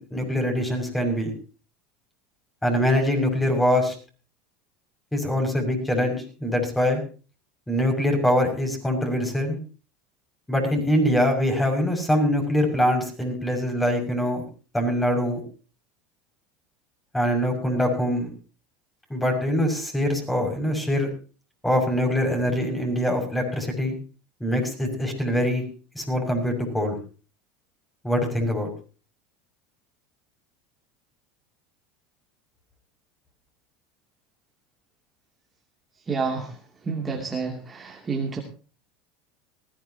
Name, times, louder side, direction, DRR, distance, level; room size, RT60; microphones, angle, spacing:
voice 1, 0.1-1.3 2.6-3.9 5.1-7.0 7.7-9.6 10.5-14.4 14.7-15.4 17.1-18.3 19.1-21.1 21.6-23.9 24.4-25.6 25.9-27.0 28.0-28.7, equal, 5° left, 4 dB, 6.3 m, -23 dB
voice 2, 36.1-36.6 36.8-38.4, right 4 dB, 20° right, 1 dB, 2.7 m, -29 dB
20.0 x 15.5 x 2.9 m, 0.36 s
supercardioid pair, 110°, 0 cm